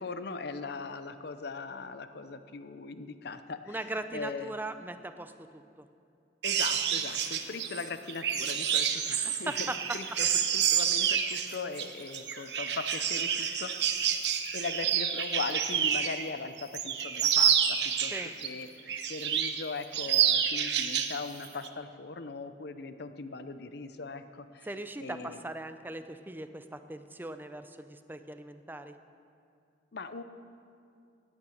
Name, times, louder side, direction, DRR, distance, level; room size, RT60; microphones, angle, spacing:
voice 1, 0.0-4.6 6.4-10.3 10.5-18.2 18.4-24.7 25.0-25.4 29.9-30.2, left 4 dB, 65° left, 10 dB, 0.7 m, -40 dB
voice 2, 3.7-5.9 9.2-9.8 18.1-18.3 24.6-28.9, right 2 dB, 10° right, 9 dB, 0.5 m, -39 dB
sound 1, 6.4-16.2 16.6-18.5 18.9-19.6 19.9-21.2 21.4-21.7, right 8 dB, 65° right, 0.9 m, -28 dB
17.0 x 8.8 x 6.5 m, 2.5 s
head